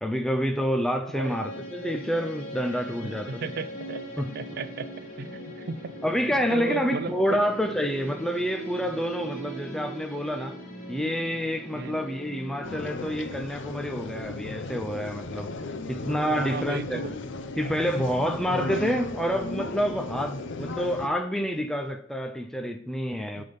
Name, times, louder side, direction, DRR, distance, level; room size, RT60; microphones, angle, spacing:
voice 1, 0.0-3.4 4.2-4.3 6.0-10.6 10.9-15.5 15.9-17.1 17.6-23.4, equal, ahead, 0.4 m, -28 dB
sound 1, 1.2-13.1, right 1 dB, 50° left, 2.8 m, -40 dB
voice 2, 3.0-4.9 5.2-6.1 6.5-7.4 11.7-11.9 16.3-17.1 23.3-23.4, right 4 dB, 55° right, 0.5 m, -35 dB
sound 2, 12.6-21.1, left 2 dB, 65° left, 0.6 m, -35 dB
9.3 x 3.5 x 5.3 m
head